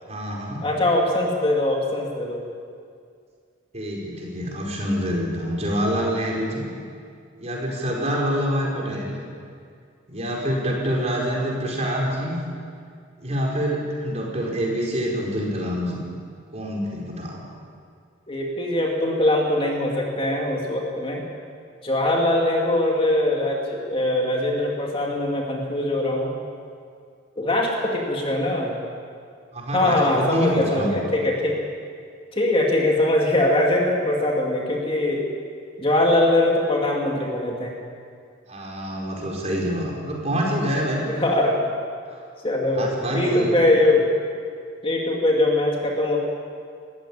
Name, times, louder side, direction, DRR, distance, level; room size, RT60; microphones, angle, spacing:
voice 1, 0.0-0.6 3.7-6.6 7.4-9.1 10.1-12.4 13.2-16.0 16.5-17.4 29.5-31.0 38.5-41.1 42.7-43.7, equal, 35° right, -2 dB, 5.0 m, -26 dB
voice 2, 0.6-2.4 18.3-21.2 21.8-26.4 27.4-28.8 29.7-31.6 32.3-35.3 35.8-37.7 41.1-41.6 42.4-44.1 44.8-46.2, left 1 dB, 25° left, -1 dB, 2.5 m, -22 dB
21.5 x 15.5 x 8.9 m, 2.2 s
head